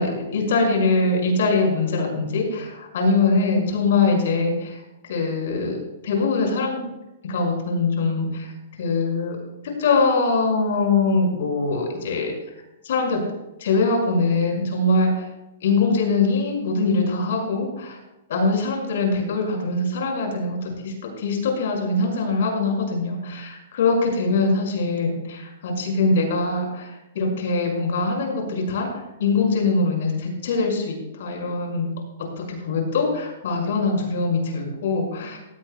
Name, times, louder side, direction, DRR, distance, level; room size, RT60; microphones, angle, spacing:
voice 1, 0.0-4.8 5.1-5.8 6.0-6.9 7.2-8.5 8.8-9.4 9.8-12.3 12.8-13.2 13.6-15.3 15.6-18.0 18.3-28.9 29.2-31.9 32.4-35.4, left 3 dB, 65° left, 1 dB, 5.4 m, -22 dB
17.5 x 16.5 x 2.2 m, 0.95 s
hypercardioid pair, 150°, 0 cm